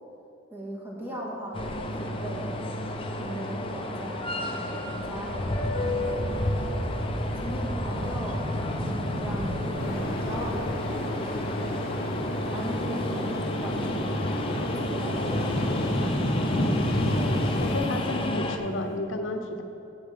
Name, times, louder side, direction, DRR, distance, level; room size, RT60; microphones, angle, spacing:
voice 1, 0.5-2.7 3.2-6.8 7.4-8.4 9.0-12.0 12.5-14.1 14.6-17.0, right 1 dB, 10° right, -5 dB, 1.9 m, -38 dB
sound 1, 1.5-18.6, left 1 dB, 30° left, 0.7 m, -31 dB
sound 2, 6.0-16.0 17.2-17.3 17.7-18.0 18.3-18.9, equal, 85° right, 1.2 m, -36 dB
sound 3, 9.8-17.7, left 1 dB, 50° left, 1.0 m, -30 dB
voice 2, 17.6-19.6, left 2 dB, 80° left, 6 dB, 0.8 m, -31 dB
7.1 x 6.9 x 7.6 m, 2.7 s
head